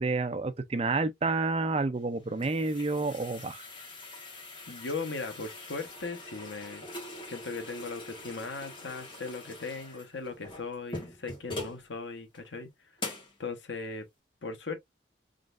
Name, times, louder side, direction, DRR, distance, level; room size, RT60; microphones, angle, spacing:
voice 1, 0.0-3.7, right 3 dB, 35° right, 0.5 m, -29 dB
sound 1, 2.0-11.8 12.3-12.4 13.0-13.4, left 2 dB, 25° left, 1.5 m, -43 dB
voice 2, 4.7-6.8 7.3-12.7 13.4-14.1 14.4-14.8, left 3 dB, 90° left, 1.1 m, -38 dB
3.9 x 3.2 x 2.5 m
head